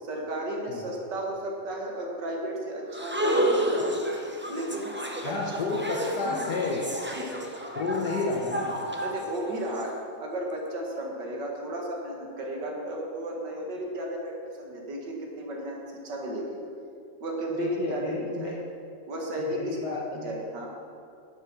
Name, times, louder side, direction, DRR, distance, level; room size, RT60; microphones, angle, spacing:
voice 1, 0.0-4.0 4.5-4.9 5.2-5.6 7.1-7.4 9.0-9.9 10.2-16.6 17.2-18.6 19.1-20.7, right 1 dB, 70° right, 0 dB, 2.4 m, -34 dB
sound 1, 2.9-9.8, equal, 15° right, 0.4 m, -30 dB
voice 2, 5.2-6.8 7.7-8.7 17.6-18.5 19.5-20.3, left 3 dB, 60° left, -3 dB, 1.7 m, -31 dB
11.5 x 7.9 x 6.2 m, 2.5 s
omnidirectional pair, 2.0 m